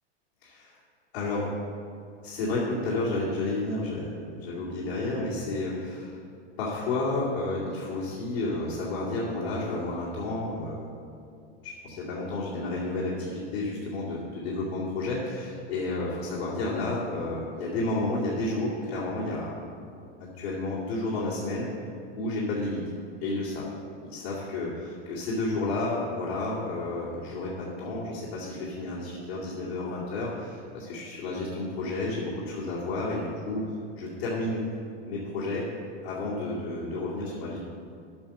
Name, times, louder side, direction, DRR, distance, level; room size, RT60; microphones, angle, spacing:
voice 1, 0.4-0.7 1.1-1.5 2.2-6.2 6.6-11.0 11.6-19.7 20.4-21.7 22.2-22.8 23.2-23.7 24.0-34.6 35.0-35.7 36.0-37.6, left 2 dB, 70° left, -8 dB, 2.5 m, -31 dB
8.9 x 6.3 x 6.7 m, 2.4 s
supercardioid pair, 120°, 31 cm